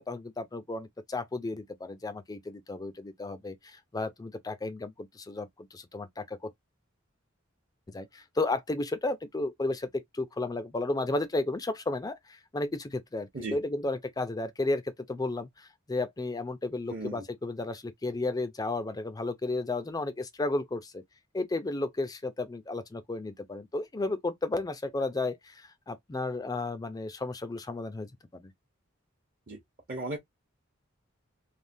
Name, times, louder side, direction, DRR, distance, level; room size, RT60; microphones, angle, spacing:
voice 1, 0.0-6.5 7.9-21.0 21.3-28.5, left 2 dB, 20° left, 0.4 m, -33 dB
voice 2, 16.9-17.2 29.5-29.6 29.9-30.2, right 2 dB, 45° right, 0.8 m, -35 dB
3.3 x 2.2 x 2.6 m
head